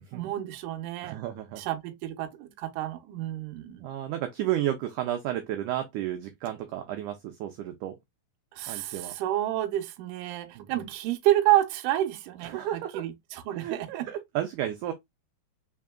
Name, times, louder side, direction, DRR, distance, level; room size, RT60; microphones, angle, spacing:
voice 1, 0.1-1.2 1.6-3.9 8.5-14.1, right 14 dB, 75° right, 2.1 m, -29 dB
voice 2, 1.0-1.6 3.8-8.0 8.7-9.1 10.6-10.9 12.4-13.0 13.5-14.9, right 12 dB, 90° right, 1.7 m, -32 dB
5.0 x 3.7 x 2.2 m
omnidirectional pair, 4.3 m